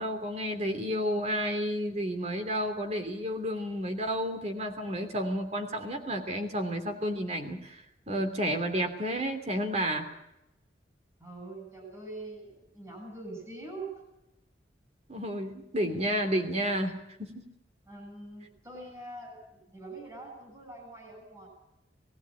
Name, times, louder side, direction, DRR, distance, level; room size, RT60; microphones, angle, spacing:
voice 1, 0.0-10.1 15.1-17.5, equal, 35° right, 6 dB, 3.0 m, -31 dB
voice 2, 11.2-13.9 17.9-21.5, right 2 dB, 15° right, 2 dB, 7.5 m, -44 dB
20.0 x 15.5 x 8.6 m, 0.87 s
head